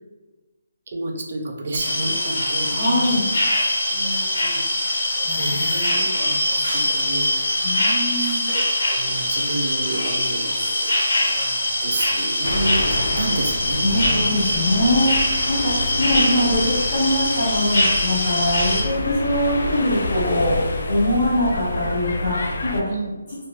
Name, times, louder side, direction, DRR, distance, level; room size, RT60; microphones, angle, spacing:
voice 1, 0.9-3.2 3.9-4.6 5.3-7.6 8.2-14.3 15.8-15.9 18.7-18.8 22.9-23.1, right 2 dB, 35° right, 0 dB, 0.3 m, -30 dB
sound 1, 1.8-18.8, left 1 dB, 75° left, 1.2 m, -23 dB
voice 2, 2.6-3.3 5.2-6.0 6.7-6.9 7.6-8.4 13.1-13.2 13.8-20.6 20.9-22.8, left 1 dB, 20° left, -11 dB, 0.9 m, -23 dB
sound 2, 12.4-22.8, left 2 dB, 55° left, 0.3 m, -28 dB
2.4 x 2.2 x 3.0 m, 1.2 s
hypercardioid pair, 180°, 0 cm